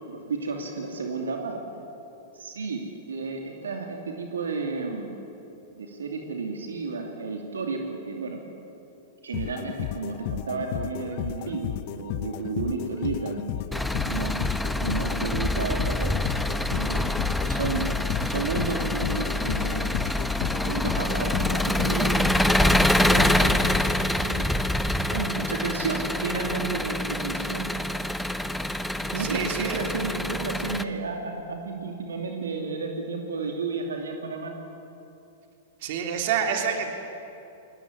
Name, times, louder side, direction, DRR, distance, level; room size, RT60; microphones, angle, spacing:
voice 1, 0.1-1.6 2.3-5.1 5.7-8.4 9.2-13.6 14.1-14.3 14.8-16.2 16.7-17.9 18.2-20.0 20.6-23.7 24.2-24.6 25.1-27.7 29.0-34.5, right 4 dB, 85° right, 2 dB, 2.6 m, -32 dB
sound 1, 9.3-24.6, left 13 dB, 50° left, 0.9 m, -33 dB
Engine, 13.7-30.8, left 1 dB, 5° left, 1.1 m, -26 dB
voice 2, 29.2-29.9 35.8-36.9, right 7 dB, 55° right, 3 dB, 3.3 m, -28 dB
22.0 x 19.0 x 9.8 m, 2.8 s
hypercardioid pair, 110°, 0 cm